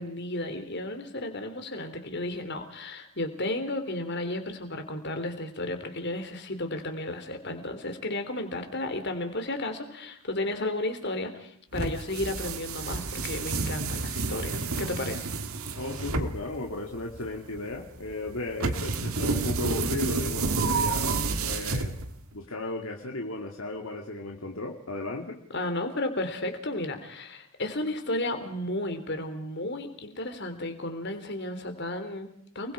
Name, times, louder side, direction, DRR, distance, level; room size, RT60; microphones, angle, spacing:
voice 1, 0.0-15.3 25.5-32.7, left 1 dB, 50° left, 7 dB, 3.4 m, -33 dB
sound 1, 11.7-22.3, right 3 dB, 80° right, 2.1 m, -30 dB
voice 2, 15.7-22.0 22.3-25.4, left 2 dB, 70° left, 1 dB, 2.2 m, -35 dB
30.0 x 21.0 x 4.9 m, 0.70 s
head